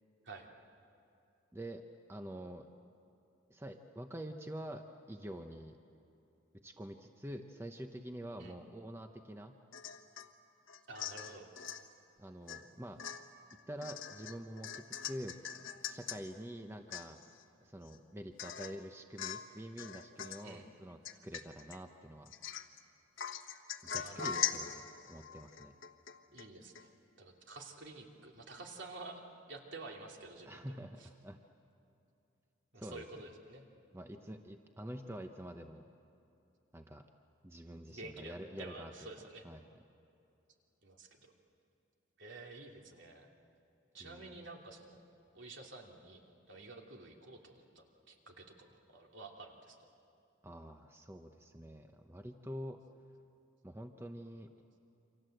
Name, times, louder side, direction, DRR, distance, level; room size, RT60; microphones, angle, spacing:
voice 1, 1.5-1.8 2.1-2.7 3.5-5.8 6.6-9.6 12.2-13.0 13.7-15.4 15.8-17.2 17.6-22.3 23.8-25.7 30.5-31.4 32.8-33.0 33.9-35.9 36.7-37.1 37.4-38.9 39.4-39.6 44.0-44.4 50.4-52.8 53.6-54.5, equal, 10° right, 5 dB, 0.8 m, -46 dB
Domestic sounds home sounds / Chink clink / Drip, 9.7-10.3 10.7-11.9 12.5-12.7 13.0-16.2 16.6-16.7 16.9-17.4 17.9-18.0 18.4-18.8 19.2-19.5 19.8-20.5 21.0-21.8 22.3-22.8 23.2-26.5 26.8-26.9, left 9 dB, 75° left, 1.3 m, -42 dB
voice 2, 10.9-11.5 20.4-20.7 24.0-24.5 26.3-26.9 27.2-29.2 29.5-31.1 32.7-33.7 37.9-39.4 40.8-41.3 42.2-43.3 43.9-45.0 45.3-46.2 46.5-49.8, right 2 dB, 65° right, 1 dB, 2.9 m, -50 dB
28.5 x 25.5 x 7.9 m, 2.7 s
head